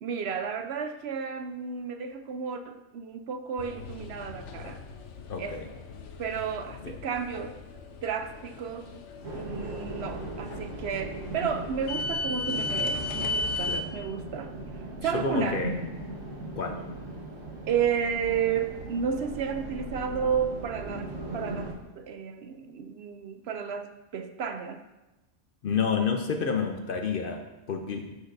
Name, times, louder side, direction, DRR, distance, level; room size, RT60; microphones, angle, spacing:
voice 1, 0.0-4.8 5.4-5.7 6.2-7.6 8.0-9.0 9.3-14.5 15.0-15.6 17.7-24.8, right 7 dB, 65° right, 8 dB, 0.7 m, -32 dB
sound 1, 3.6-13.8, left 2 dB, 75° left, 1.0 m, -36 dB
voice 2, 5.3-5.7 6.8-6.9 13.7-13.8 15.1-15.7 16.6-16.8 25.6-28.2, left 6 dB, 55° left, 5 dB, 0.7 m, -29 dB
sound 2, 9.2-21.7, right 2 dB, 90° right, 1.7 m, -38 dB
13.0 x 6.4 x 2.6 m, 1.0 s
omnidirectional pair, 1.3 m